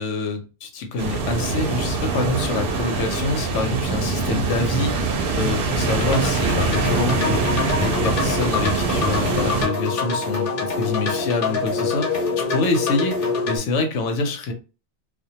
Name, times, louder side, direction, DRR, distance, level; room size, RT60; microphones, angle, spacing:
voice 1, 0.0-14.5, left 3 dB, 85° left, 0.9 m, -26 dB
sound 1, 1.0-9.7, right 4 dB, 60° right, 0.7 m, -23 dB
sound 2, 5.9-13.6, left 4 dB, 55° left, 0.7 m, -25 dB
2.2 x 2.2 x 2.7 m
omnidirectional pair, 1.2 m